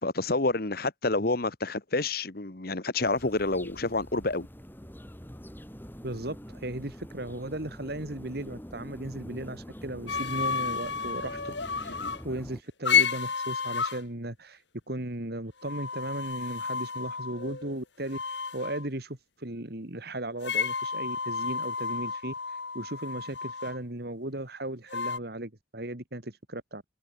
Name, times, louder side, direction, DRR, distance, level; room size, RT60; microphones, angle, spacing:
voice 1, 0.0-4.5 12.0-12.1, left 2 dB, 50° left, 1.4 m, -28 dB
sound 1, 3.0-12.6, equal, 10° left, 5.4 m, -45 dB
voice 2, 6.0-26.8, right 1 dB, 55° right, 2.4 m, -37 dB
sound 2, 10.1-12.2 12.8-14.0 15.6-17.8 18.1-18.9 20.4-23.8 24.9-25.2, left 6 dB, 65° left, 2.6 m, -31 dB
head